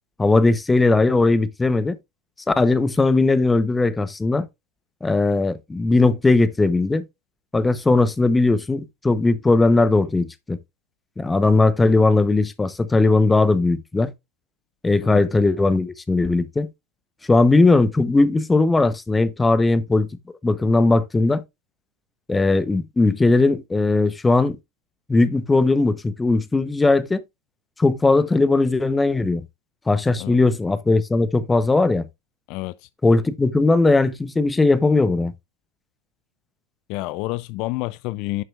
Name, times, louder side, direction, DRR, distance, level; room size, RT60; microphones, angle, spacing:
voice 1, 0.2-2.0 2.5-4.5 5.0-7.0 7.5-10.6 11.2-14.1 14.8-16.7 17.3-20.1 20.4-21.4 22.3-24.6 25.1-27.2 27.8-29.4 29.9-32.1 33.0-35.3, left 3 dB, 15° left, 0.8 m, -18 dB
voice 2, 32.5-32.9 36.9-38.4, left 20 dB, 55° left, 0.3 m, -29 dB
11.0 x 6.1 x 2.4 m
hypercardioid pair, 90°, 0 cm